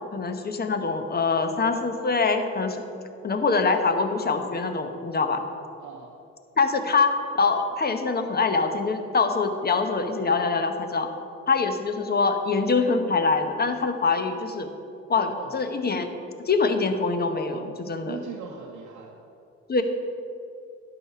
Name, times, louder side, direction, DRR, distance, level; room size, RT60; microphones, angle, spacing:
voice 1, 0.1-2.8 3.2-5.4 6.6-11.1 11.5-14.7 15.1-16.1 16.4-18.2 19.7-19.8, left 4 dB, 30° left, 7 dB, 1.0 m, -24 dB
voice 2, 5.8-6.1 15.3-15.6 18.0-19.2, right 6 dB, 80° right, -1 dB, 1.0 m, -40 dB
11.0 x 4.9 x 6.8 m, 2.7 s
cardioid pair, 90°, 30 cm